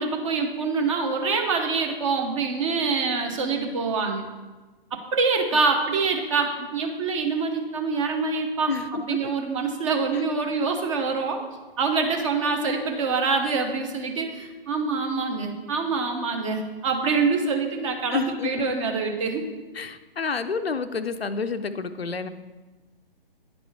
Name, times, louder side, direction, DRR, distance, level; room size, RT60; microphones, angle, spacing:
voice 1, 0.0-4.3 4.9-11.4 11.8-19.4, right 4 dB, 35° right, 3 dB, 0.9 m, -25 dB
voice 2, 8.7-9.3 10.1-10.2 18.1-18.8 19.7-22.3, left 5 dB, 85° left, 10 dB, 0.6 m, -29 dB
9.8 x 4.2 x 4.7 m, 1.2 s
figure-of-eight pair, 130°, 30 cm